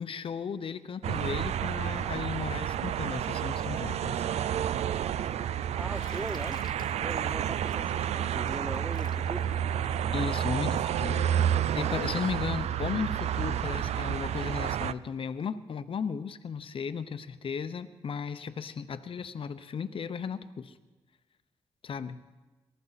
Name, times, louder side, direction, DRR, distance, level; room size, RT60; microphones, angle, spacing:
voice 1, 0.0-4.2 10.1-11.3 11.7-20.7 21.8-22.2, left 6 dB, 55° left, 12 dB, 0.8 m, -35 dB
sound 1, 1.0-14.9, right 10 dB, 80° right, 0.4 m, -30 dB
voice 2, 5.8-6.6 7.0-9.5, right 2 dB, 15° right, 13 dB, 0.6 m, -39 dB
Bathtub (filling or washing), 5.9-11.6, left 4 dB, 40° left, 1.2 m, -53 dB
24.5 x 13.5 x 4.1 m, 1.2 s
cardioid pair, 90°, 11 cm